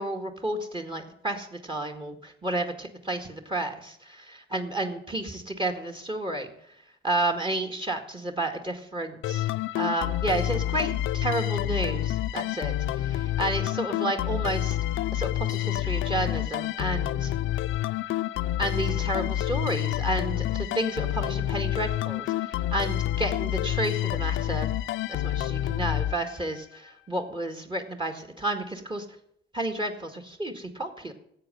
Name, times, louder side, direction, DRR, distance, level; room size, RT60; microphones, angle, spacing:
voice 1, 0.0-6.5 7.0-9.5 9.8-14.8 15.1-17.3 18.6-24.7 25.1-29.1 29.5-31.1, right 1 dB, 25° right, 7 dB, 2.0 m, -31 dB
sound 1, 9.2-26.8, left 13 dB, 80° left, 0.6 m, -28 dB
13.5 x 8.6 x 9.1 m, 0.73 s
cardioid pair, 90°, 20 cm